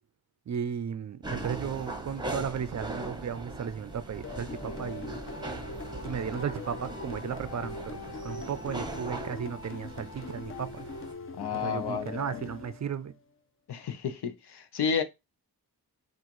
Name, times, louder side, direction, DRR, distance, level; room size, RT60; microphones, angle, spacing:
voice 1, 0.5-5.2 6.0-10.9 11.5-13.1, right 7 dB, 45° right, 0.4 m, -35 dB
sound 1, 1.2-11.1, right 2 dB, 10° right, 0.9 m, -40 dB
sound 2, 4.2-13.2, left 3 dB, 35° left, 0.6 m, -42 dB
voice 2, 11.4-12.3 13.7-15.0, left 6 dB, 80° left, 0.8 m, -31 dB
6.2 x 2.5 x 3.0 m
wide cardioid pair, 135°, 39 cm